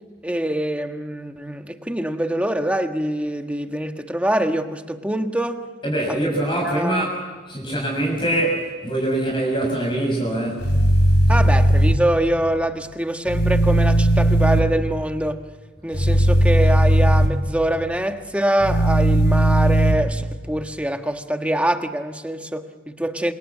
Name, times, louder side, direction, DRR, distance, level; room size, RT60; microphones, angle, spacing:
voice 1, 0.2-5.7 6.1-6.2 6.6-7.1 11.3-15.4 15.8-23.3, right 1 dB, 5° right, 6 dB, 1.4 m, -24 dB
voice 2, 5.8-7.1 7.5-10.8, right 1 dB, 25° left, -1 dB, 6.8 m, -23 dB
sound 1, 10.6-11.9 13.3-14.6 15.9-17.3 18.6-19.9, right 1 dB, 55° left, 5.1 m, -16 dB
28.0 x 27.5 x 7.3 m, 1.4 s
head